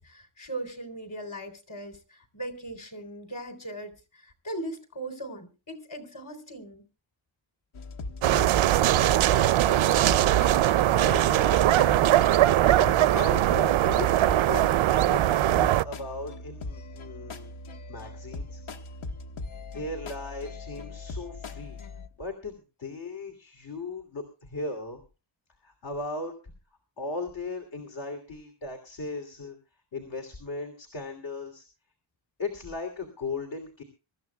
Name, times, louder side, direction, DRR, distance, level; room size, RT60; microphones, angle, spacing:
voice 1, 0.0-6.8, right 1 dB, 40° left, 7 dB, 3.7 m, -39 dB
sound 1, 7.7-22.1, left 3 dB, 85° left, 1.5 m, -40 dB
sound 2, 8.2-15.8, right 13 dB, 80° right, 0.6 m, -21 dB
voice 2, 9.6-10.4 10.9-11.9 12.6-14.7 15.1-17.5 17.9-18.6 19.7-21.8 22.2-25.0 25.6-26.3 27.0-29.6 29.9-31.6 32.4-33.8, left 3 dB, 65° left, 5 dB, 2.9 m, -37 dB
24.5 x 14.0 x 2.3 m, 0.33 s
wide cardioid pair, 130°, 48 cm